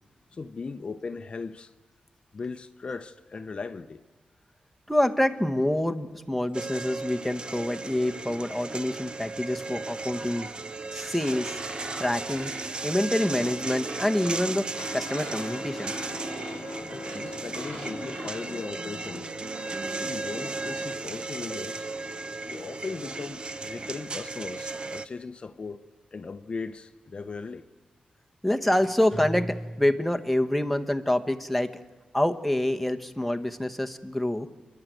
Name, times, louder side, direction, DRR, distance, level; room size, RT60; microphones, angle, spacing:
voice 1, 0.3-1.7 2.3-4.0 16.9-19.3 20.0-21.9 22.5-25.8 26.1-27.6, left 4 dB, 40° left, 0.7 m, -38 dB
voice 2, 4.9-10.5 10.9-11.6 12.0-12.5 12.8-15.9 20.7-20.8 28.4-31.8 32.1-34.5, left 1 dB, ahead, 1.1 m, -26 dB
sound 1, 6.5-25.1, right 3 dB, 35° right, 0.7 m, -36 dB
sound 2, 11.2-18.4, right 2 dB, 65° right, 5.8 m, -41 dB
Guitar, 14.7-24.4, left 6 dB, 70° left, 1.0 m, -45 dB
29.0 x 11.5 x 9.2 m
wide cardioid pair, 110°, 3 cm